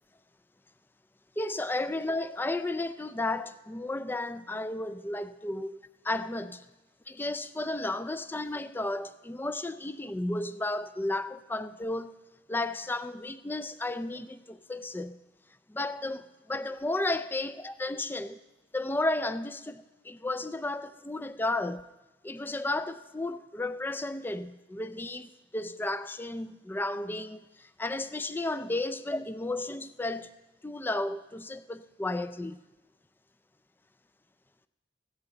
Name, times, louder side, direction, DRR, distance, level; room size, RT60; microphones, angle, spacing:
voice 1, 1.4-5.8 6.0-6.6 7.1-12.1 12.5-15.2 15.7-18.4 18.7-21.8 22.2-30.3 30.6-32.6, left 2 dB, 10° left, 0.4 m, -33 dB
16.0 x 13.5 x 3.9 m
head